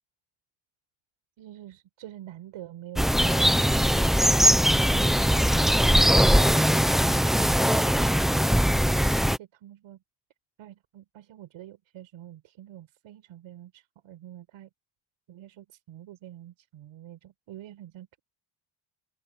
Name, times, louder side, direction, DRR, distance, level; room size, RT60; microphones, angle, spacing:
voice 1, 1.4-5.9 9.3-10.0 10.6-14.7 15.3-18.2, right 12 dB, 70° right, 6.4 m, -47 dB
sound 1, 3.0-9.4, equal, ahead, 0.6 m, -21 dB
open air
cardioid pair, 160°, 50 cm